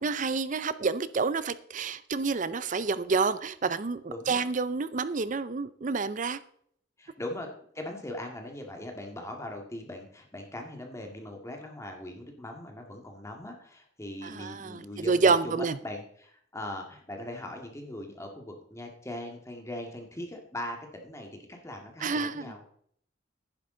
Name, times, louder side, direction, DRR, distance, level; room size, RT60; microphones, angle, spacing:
voice 1, 0.0-6.4 14.2-15.8 22.0-22.7, right 4 dB, 45° right, 15 dB, 0.5 m, -28 dB
voice 2, 4.1-4.5 7.0-7.5 7.7-22.6, left 1 dB, 15° left, 2 dB, 1.9 m, -40 dB
11.0 x 10.5 x 3.8 m, 0.63 s
head